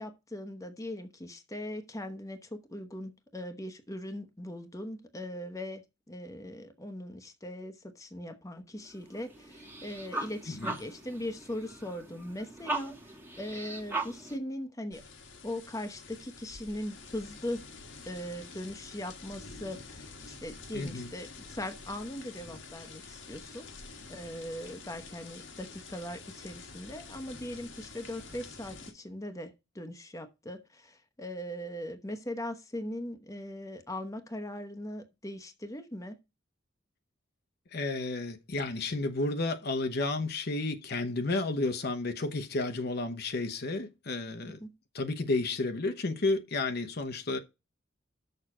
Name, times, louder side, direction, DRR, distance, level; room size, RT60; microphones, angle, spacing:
voice 1, 0.0-15.0 15.4-17.6 18.1-23.7 24.1-36.2 44.5-44.7, left 1 dB, 15° left, 0.9 m, -40 dB
sound 1, 8.8-14.4, right 2 dB, 10° right, 1.4 m, -39 dB
sound 2, 14.9-28.9, left 4 dB, 80° left, 1.7 m, -48 dB
voice 2, 20.7-21.1 37.7-44.6 44.9-47.4, left 2 dB, 55° left, 0.9 m, -32 dB
6.7 x 5.6 x 6.0 m
head